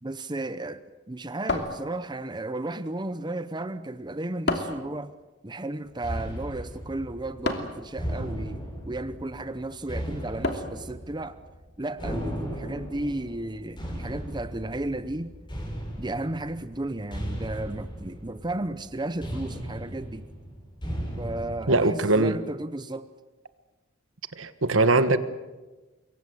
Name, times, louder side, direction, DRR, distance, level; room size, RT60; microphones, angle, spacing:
voice 1, 0.0-5.1 5.4-8.6 8.9-11.4 11.8-15.3 16.0-20.3 21.2-23.1, right 2 dB, 20° right, 0.8 m, -34 dB
sound 1, 1.5-2.4 4.5-4.9 7.4-7.9 10.4-10.9, left 2 dB, 55° left, 2.9 m, -30 dB
sound 2, 6.0-21.6, equal, 25° left, 6.6 m, -37 dB
voice 2, 21.7-22.4 24.3-25.2, right 2 dB, 75° right, 1.5 m, -21 dB
26.0 x 23.0 x 8.0 m
head